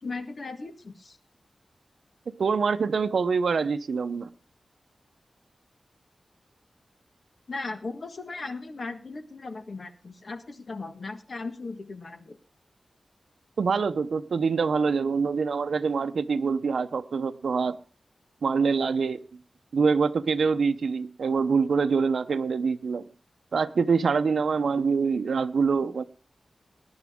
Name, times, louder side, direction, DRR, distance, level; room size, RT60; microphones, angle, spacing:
voice 1, 0.0-1.2 7.5-12.4, left 3 dB, 50° left, 1.5 m, -37 dB
voice 2, 2.3-4.3 13.6-17.8 18.4-19.2 19.7-23.0 23.5-26.0, right 5 dB, 80° right, 0.7 m, -25 dB
19.0 x 10.5 x 3.6 m
wide cardioid pair, 115°, 0 cm